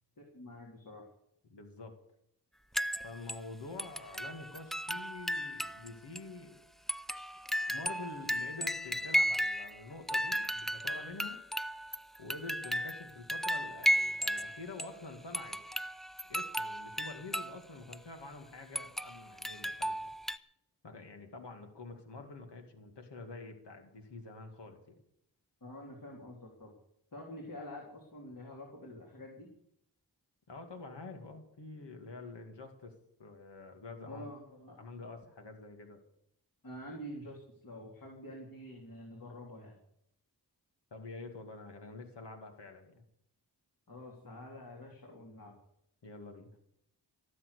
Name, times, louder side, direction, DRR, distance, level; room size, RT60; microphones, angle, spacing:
voice 1, 0.2-1.0 25.6-26.7 27.1-29.5 34.1-34.8 36.6-39.8 43.9-45.5, left 1 dB, 55° left, -1 dB, 3.5 m, -47 dB
voice 2, 1.5-1.9 3.0-6.6 7.7-11.4 12.2-15.6 16.3-20.1 20.8-25.0 30.5-32.9 33.2-34.3 34.8-36.0 40.9-43.0 46.0-46.5, left 3 dB, 90° left, 4 dB, 2.4 m, -47 dB
sound 1, 2.7-3.5 3.8-5.9 6.2-6.3 6.9-9.8 10.1-15.0 15.3-17.6 17.9-18.0 18.7-20.4, equal, ahead, 0.6 m, -34 dB
17.0 x 7.7 x 8.3 m, 0.75 s
cardioid pair, 55°, 41 cm